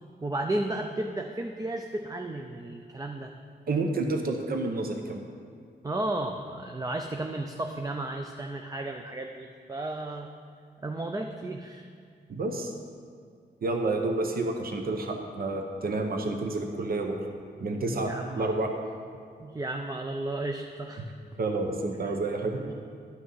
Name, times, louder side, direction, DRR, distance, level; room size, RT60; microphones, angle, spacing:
voice 1, 0.2-3.3 5.8-10.3 10.8-11.9 17.9-18.5 19.4-21.1 22.5-22.7, right 2 dB, 20° right, 3 dB, 0.5 m, -33 dB
voice 2, 3.7-5.2 12.3-12.7 13.6-17.2 17.6-18.1 18.4-18.7 21.4-22.6, right 2 dB, 55° right, 4 dB, 0.9 m, -29 dB
11.5 x 6.1 x 5.5 m, 2.3 s
wide cardioid pair, 120°, 18 cm